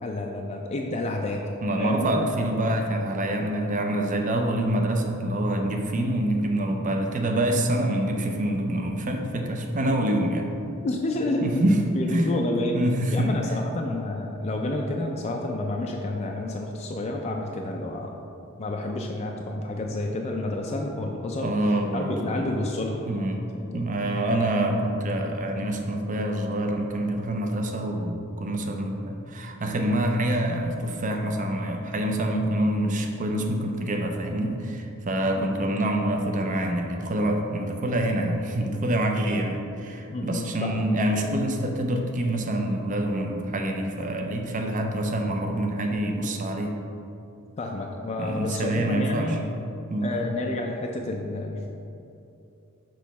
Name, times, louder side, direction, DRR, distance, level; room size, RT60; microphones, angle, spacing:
voice 1, 0.0-2.2 10.8-11.6 11.9-12.8 13.1-18.2 18.6-23.0 23.5-23.8 35.4-35.5 40.1-40.9 47.6-49.4 50.0-51.7, left 2 dB, 30° left, 1 dB, 0.4 m, -29 dB
voice 2, 1.6-10.5 11.4-11.8 12.1-12.3 12.7-13.3 21.4-22.5 23.0-23.4 23.7-46.8 48.2-49.4 49.9-50.2, right 1 dB, 40° right, 3 dB, 0.5 m, -26 dB
6.3 x 3.0 x 5.6 m, 2.7 s
head